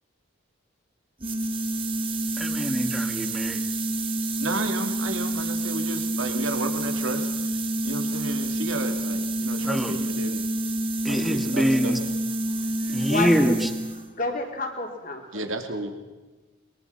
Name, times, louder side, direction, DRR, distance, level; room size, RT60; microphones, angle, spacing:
sound 1, 1.2-14.1, right 1 dB, 25° right, 1.7 m, -28 dB
voice 1, 2.4-3.6 9.6-10.0 11.0-12.0 12.9-13.6, equal, ahead, 7 dB, 1.5 m, -24 dB
voice 2, 4.4-7.5 7.8-10.4 11.1-12.0 15.3-15.9, right 2 dB, 80° right, 6 dB, 2.8 m, -32 dB
voice 3, 12.4-13.6 13.8-15.5, left 2 dB, 40° left, 3 dB, 3.8 m, -32 dB
23.0 x 23.0 x 5.8 m, 1.2 s
head